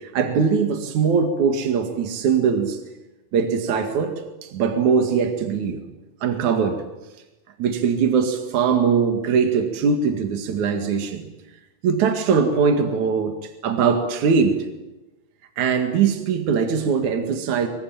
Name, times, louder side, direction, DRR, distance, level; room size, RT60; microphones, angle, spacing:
voice 1, 0.0-2.8 3.3-5.8 6.2-6.8 7.6-11.3 11.8-14.6 15.6-17.7, right 6 dB, 70° right, 6 dB, 3.4 m, -21 dB
26.0 x 23.0 x 9.0 m, 1.0 s
omnidirectional pair, 3.6 m